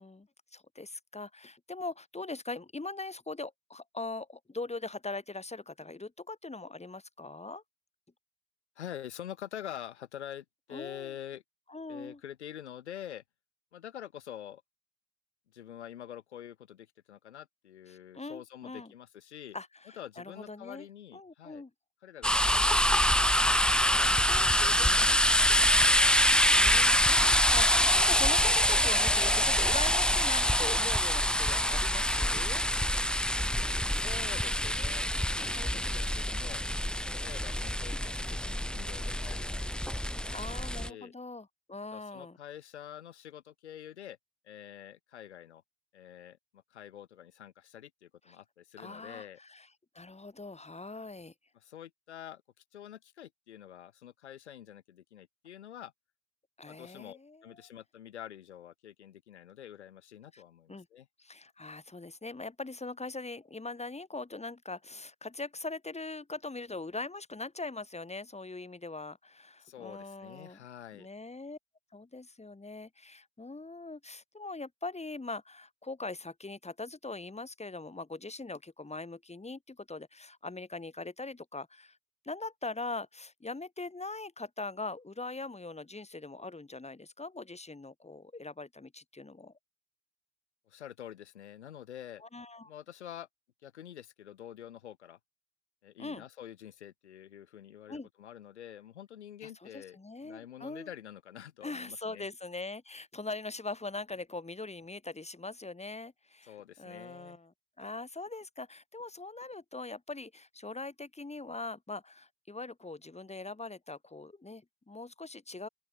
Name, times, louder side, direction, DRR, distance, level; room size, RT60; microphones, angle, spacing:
voice 1, 0.0-7.6 10.7-11.2 11.7-12.2 17.9-18.9 19.5-20.9 21.1-21.7 24.3-24.5 26.0-32.7 40.0-42.4 48.3-48.4 48.8-49.7 49.9-51.3 56.6-57.7 60.3-60.4 60.7-60.9 61.2-70.6 70.9-71.6 71.9-82.0 82.2-89.5 92.2-92.7 96.0-96.2 97.9-98.1 99.4-100.9 101.6-115.7, left 3 dB, 20° left, 7.1 m, -42 dB
voice 2, 8.8-11.4 11.9-13.2 13.7-14.6 15.5-19.6 20.0-21.6 22.0-26.2 33.9-36.6 37.0-40.6 40.8-41.1 41.9-44.2 44.4-45.6 45.9-49.4 51.6-52.4 52.7-55.9 56.7-61.1 69.6-71.1 90.7-92.2 92.6-93.3 93.6-95.2 95.8-102.3 106.5-107.4, left 10 dB, 85° left, 1.6 m, -47 dB
sound 1, 22.2-40.9, equal, 5° left, 1.5 m, -26 dB
open air
figure-of-eight pair, 45°, 33 cm